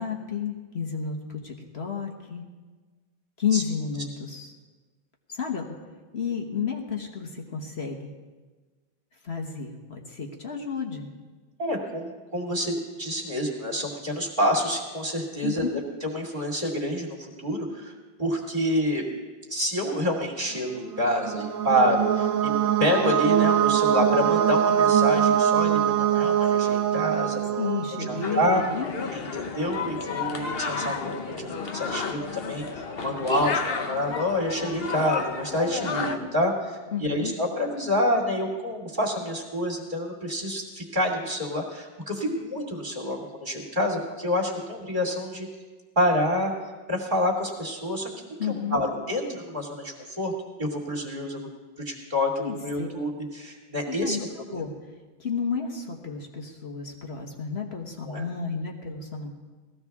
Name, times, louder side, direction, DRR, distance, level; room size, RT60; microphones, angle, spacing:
voice 1, 0.0-2.4 3.4-4.5 5.3-5.6 6.1-8.1 9.2-11.1 15.4-15.8 27.6-28.9 36.9-37.3 48.4-48.8 52.4-52.9 53.9-54.2 54.5-54.7 55.2-59.3, left 6 dB, 35° left, 2 dB, 1.3 m, -31 dB
voice 2, 11.6-17.9 18.2-19.0 19.5-22.5 22.8-28.6 29.1-30.9 31.3-45.5 46.0-46.5 46.9-48.1 48.5-50.3 50.6-51.5 51.8-54.2 54.5-54.6 58.1-58.2, left 1 dB, 25° right, -2 dB, 2.4 m, -28 dB
sound 1, 20.8-28.6, right 9 dB, 55° right, 1.2 m, -23 dB
sound 2, 28.2-36.2, left 5 dB, 60° left, 0.6 m, -32 dB
19.0 x 14.5 x 3.6 m, 1.3 s
omnidirectional pair, 2.2 m